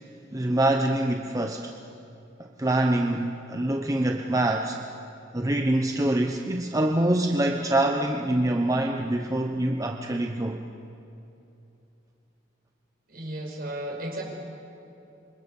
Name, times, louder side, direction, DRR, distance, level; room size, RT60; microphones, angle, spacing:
voice 1, 0.3-1.7 2.6-4.8 5.3-10.6, right 1 dB, 20° right, 3 dB, 0.9 m, -25 dB
voice 2, 13.1-14.2, right 1 dB, 50° right, 0 dB, 5.9 m, -34 dB
26.5 x 24.5 x 7.3 m, 2.8 s
head